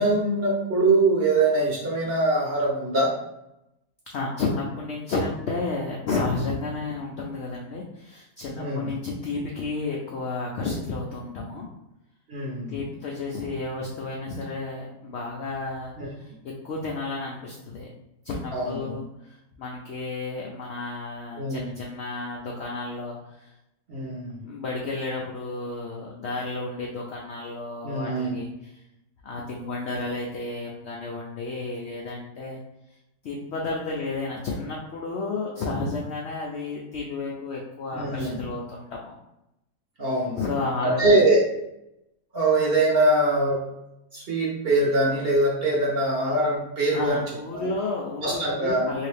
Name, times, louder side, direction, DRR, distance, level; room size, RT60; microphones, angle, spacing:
voice 1, 0.0-3.1 8.6-8.9 12.3-12.7 16.0-16.1 18.5-19.0 21.4-21.7 23.9-24.4 27.8-28.3 37.9-38.3 40.0-40.4 40.8-41.4 42.3-43.6 44.1-47.2 47.5-47.7 48.2-48.9, right 2 dB, 50° right, -4 dB, 0.8 m, -23 dB
voice 2, 4.1-11.7 12.7-16.3 16.6-17.9 18.2-23.5 24.4-28.7 29.2-32.6 33.2-39.2 40.3-41.1 46.9-49.1, left 3 dB, 85° left, -2 dB, 0.5 m, -32 dB
3.2 x 2.7 x 3.3 m, 0.87 s
omnidirectional pair, 1.7 m